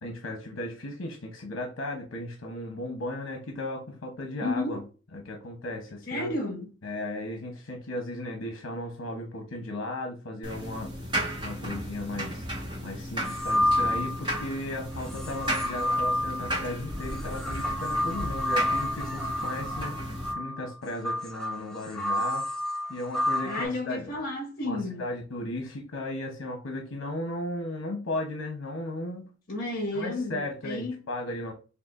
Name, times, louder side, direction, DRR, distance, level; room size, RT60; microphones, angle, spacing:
voice 1, 0.0-4.8 5.1-6.3 6.8-10.9 11.4-12.4 12.8-22.5 22.9-24.2 24.6-29.3 29.9-31.5, left 1 dB, 80° left, 0.9 m, -36 dB
voice 2, 4.4-4.8 6.1-6.7 23.4-25.0 29.5-31.0, left 2 dB, 50° left, 1.5 m, -32 dB
sound 1, 10.4-20.3, equal, 25° right, 1.1 m, -34 dB
sound 2, 13.2-14.5 15.0-23.6, left 1 dB, 5° left, 0.5 m, -30 dB
6.7 x 2.4 x 2.5 m
head